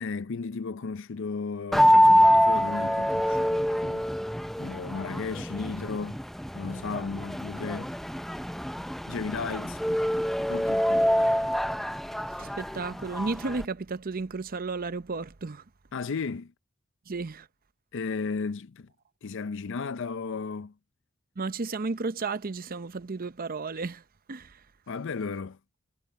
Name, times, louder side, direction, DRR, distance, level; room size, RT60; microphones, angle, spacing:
voice 1, 0.0-4.1 4.6-6.2 6.5-7.9 9.1-9.8 10.5-11.1 15.9-16.5 17.9-18.9 19.2-20.7 24.9-25.6, left 4 dB, 60° left, 0.5 m, -34 dB
sound 1, 1.7-13.6, equal, ahead, 0.4 m, -25 dB
voice 2, 12.4-15.7 17.1-17.5 21.4-24.7, right 3 dB, 45° right, 0.7 m, -33 dB
head